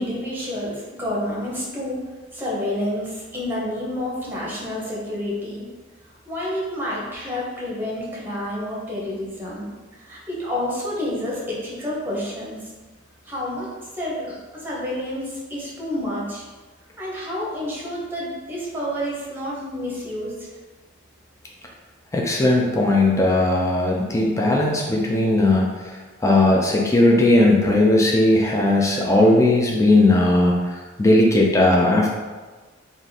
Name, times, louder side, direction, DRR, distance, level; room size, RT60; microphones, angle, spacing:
voice 1, 0.0-2.0 2.3-5.6 6.3-9.7 9.9-12.6 13.2-13.7 13.9-16.4 17.0-20.5, left 1 dB, 10° right, -6 dB, 0.9 m, -29 dB
voice 2, 22.1-25.7 26.2-32.1, left 1 dB, 15° left, -2 dB, 0.4 m, -17 dB
3.6 x 2.5 x 4.0 m, 1.3 s
head